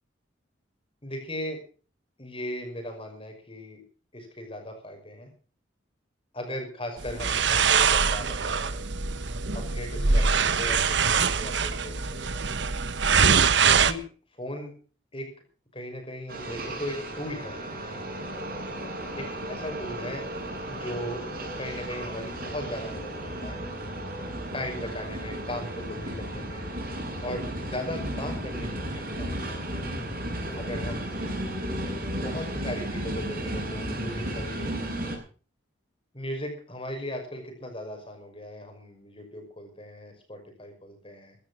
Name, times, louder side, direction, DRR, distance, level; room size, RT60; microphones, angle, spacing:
voice 1, 1.0-1.6 2.2-3.8 4.1-5.3 6.3-8.8 9.5-12.3 13.6-14.0 14.3-14.7 15.1-15.3 15.7-17.6 19.2-20.3 20.7-21.2 21.6-23.6 24.5-26.7 27.2-29.3 30.6-31.2 32.1-34.9 36.1-41.4, left 1 dB, 30° left, 4 dB, 5.7 m, -37 dB
sound 1, 7.0-13.9, right 6 dB, 65° right, 1.1 m, -23 dB
sound 2, 16.3-35.2, right 1 dB, 50° right, 7.7 m, -34 dB
15.5 x 13.0 x 6.4 m, 0.40 s
head